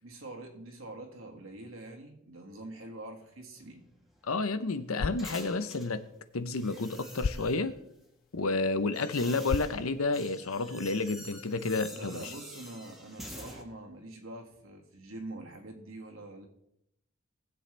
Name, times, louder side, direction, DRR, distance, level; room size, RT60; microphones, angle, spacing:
voice 1, 0.0-3.8 9.2-9.5 11.9-16.5, right 2 dB, 70° right, 2 dB, 2.0 m, -45 dB
sound 1, 3.5-6.0 6.5-7.7 8.5-13.6, equal, ahead, 1.8 m, -48 dB
voice 2, 4.3-6.0 6.3-7.8 8.3-12.3, left 3 dB, 85° left, 11 dB, 0.8 m, -30 dB
sound 2, 4.8-10.8, left 4 dB, 45° left, 0.4 m, -40 dB
19.5 x 7.8 x 3.4 m, 0.79 s
head